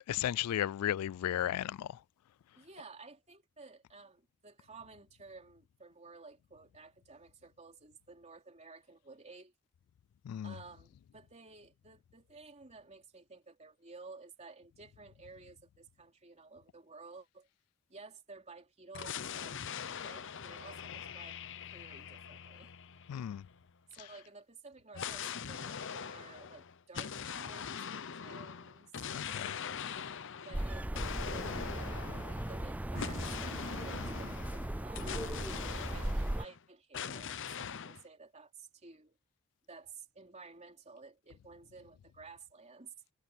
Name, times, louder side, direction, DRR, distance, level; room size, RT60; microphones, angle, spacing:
voice 1, 0.0-2.0 10.2-10.5 23.1-23.4 29.1-29.5, left 11 dB, 85° left, 0.3 m, -34 dB
voice 2, 2.5-9.5 10.4-17.5 17.9-21.4 21.7-22.7 23.9-29.9 30.4-32.0 32.5-39.2 39.7-42.9, right 4 dB, 30° right, 3.4 m, -54 dB
sound 1, 18.9-23.7 24.9-36.6 36.9-38.0, left 7 dB, 55° left, 0.8 m, -42 dB
sound 2, 30.5-36.4, right 1 dB, 5° right, 0.4 m, -38 dB
head